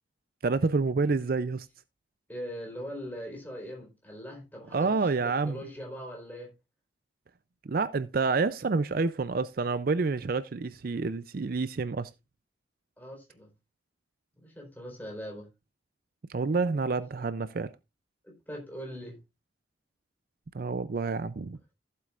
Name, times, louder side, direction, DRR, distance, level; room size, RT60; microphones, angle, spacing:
voice 1, 0.4-1.7 4.7-5.6 7.7-12.1 16.3-17.7 20.5-21.6, right 4 dB, 50° right, 0.4 m, -28 dB
voice 2, 2.3-6.5 13.0-13.5 14.4-15.5 18.2-19.2, equal, 10° left, 4.0 m, -41 dB
15.0 x 7.7 x 2.5 m
head